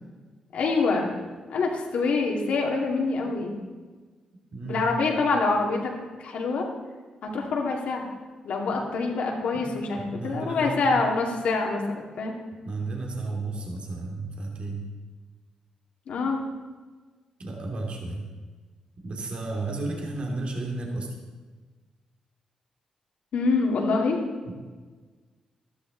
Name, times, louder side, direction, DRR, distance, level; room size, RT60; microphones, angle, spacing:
voice 1, 0.5-1.1 1.5-3.5 4.6-5.9 6.2-6.7 7.2-8.0 8.4-12.3 16.1-16.4 23.3-24.2, left 3 dB, 75° left, 0 dB, 2.4 m, -25 dB
voice 2, 4.5-4.9 9.5-9.6 9.9-10.9 12.6-14.8 17.4-18.3 19.0-21.1 24.4-24.5, right 2 dB, 55° right, 0 dB, 2.8 m, -33 dB
13.5 x 12.5 x 4.0 m, 1.4 s
cardioid pair, 65°, 2 cm